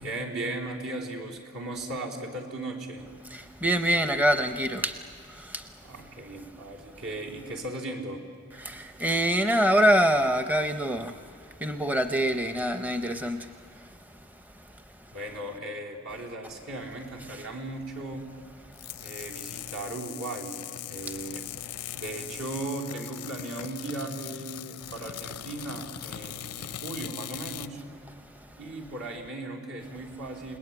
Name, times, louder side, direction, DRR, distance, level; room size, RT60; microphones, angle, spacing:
voice 1, 0.0-3.1 5.8-8.2 15.1-18.3 19.0-21.5 21.9-27.8 28.6-30.6, right 2 dB, 70° right, 3.9 m, -37 dB
voice 2, 3.3-5.9 8.6-14.3 14.5-15.1 18.7-19.1 21.0-21.2 26.7-26.8 28.3-28.5, equal, 10° right, 0.7 m, -26 dB
sound 1, 18.7-27.7, left 11 dB, 90° left, 0.6 m, -40 dB
30.0 x 20.0 x 8.9 m
head